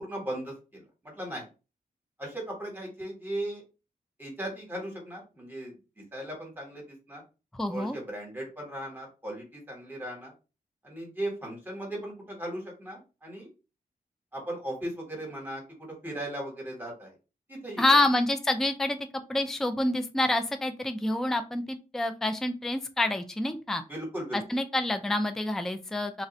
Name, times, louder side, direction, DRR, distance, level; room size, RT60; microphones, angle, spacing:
voice 1, 0.0-1.4 2.2-3.6 4.2-5.7 6.1-7.2 7.7-10.3 10.8-13.5 14.3-17.1 17.5-18.0 23.9-24.4, right 1 dB, 15° right, -1 dB, 1.3 m, -37 dB
voice 2, 7.5-8.0 17.8-19.0 19.3-23.8 24.3-26.2, left 1 dB, 5° left, 8 dB, 0.3 m, -27 dB
3.2 x 2.5 x 4.0 m, 0.30 s
wide cardioid pair, 175°, 15 cm